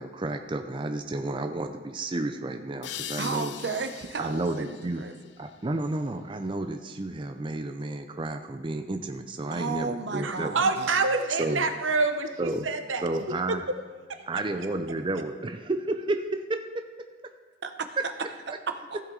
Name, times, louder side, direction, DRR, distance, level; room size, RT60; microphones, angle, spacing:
voice 1, 0.0-3.5 4.2-5.0 5.4-10.6 11.4-11.6 12.4-12.7 13.0-13.6 14.3-16.6 18.5-18.6, right 2 dB, 25° right, 7 dB, 0.5 m, -31 dB
sound 1, 2.8-6.2, left 10 dB, 65° left, 0.5 m, -42 dB
voice 2, 3.2-5.1 9.5-10.9 17.6-18.0 18.5-19.0, right 4 dB, 60° right, 8 dB, 0.8 m, -34 dB
voice 3, 10.2-13.1 13.5-13.6 14.1-14.2, right 3 dB, 90° right, 7 dB, 0.9 m, -27 dB
15.5 x 7.7 x 3.9 m, 1.5 s
head